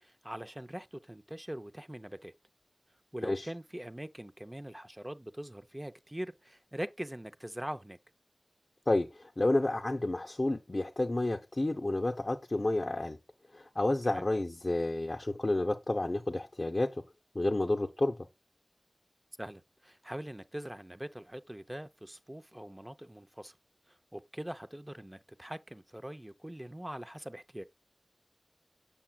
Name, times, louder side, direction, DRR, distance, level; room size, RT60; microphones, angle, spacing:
voice 1, 0.0-2.3 3.1-8.0 14.0-14.3 19.4-23.6 23.9-27.6, right 1 dB, 20° right, 0.6 m, -42 dB
voice 2, 8.9-13.2 13.5-17.0 17.3-18.2, left 2 dB, 50° left, 0.6 m, -30 dB
7.3 x 6.8 x 2.3 m
wide cardioid pair, 55°, 0 cm